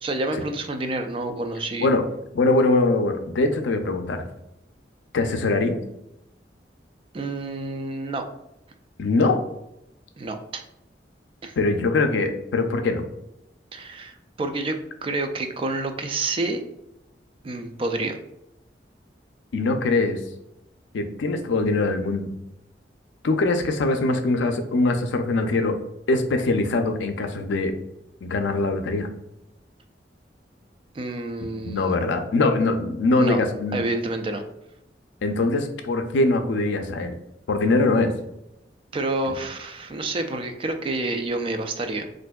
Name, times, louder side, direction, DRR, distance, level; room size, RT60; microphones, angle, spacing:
voice 1, 0.0-1.9 7.1-8.2 10.2-10.6 11.4-11.5 13.7-16.6 17.4-18.2 30.9-32.0 33.2-33.4 33.7-34.4 38.9-42.1, right 2 dB, 30° right, 7 dB, 0.3 m, -28 dB
voice 2, 2.3-4.2 5.1-5.8 9.0-9.4 11.6-13.0 19.5-20.2 20.9-22.3 23.2-25.8 26.1-27.7 28.2-29.1 31.6-33.8 35.2-37.1 37.5-38.1, left 2 dB, 90° left, 6 dB, 0.4 m, -22 dB
4.3 x 2.5 x 2.2 m, 0.83 s
head